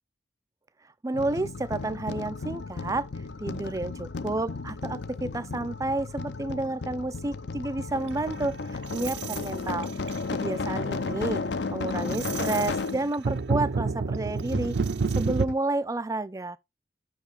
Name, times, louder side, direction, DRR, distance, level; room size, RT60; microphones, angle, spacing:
voice 1, 1.0-3.1 3.4-9.9 10.3-11.4 11.7-14.8 15.2-16.6, right 2 dB, 20° right, 0.4 m, -30 dB
sound 1, 1.1-13.1 14.5-15.2 15.5-15.6, left 3 dB, 80° left, 0.6 m, -34 dB
sound 2, 7.9-9.5 9.8-10.3 10.8-11.1 11.5-15.5, right 4 dB, 75° right, 0.5 m, -29 dB
6.3 x 4.8 x 4.9 m
head